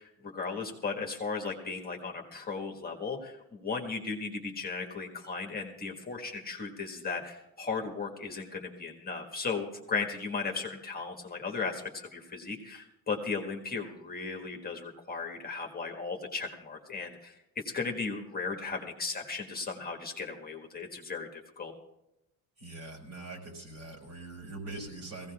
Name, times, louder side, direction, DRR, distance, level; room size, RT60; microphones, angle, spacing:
voice 1, 0.0-21.7, left 4 dB, 25° left, 1 dB, 1.4 m, -36 dB
voice 2, 22.6-25.3, right 2 dB, 60° right, 1 dB, 5.0 m, -43 dB
21.5 x 16.5 x 2.4 m, 0.88 s
cardioid pair, 125°, 38 cm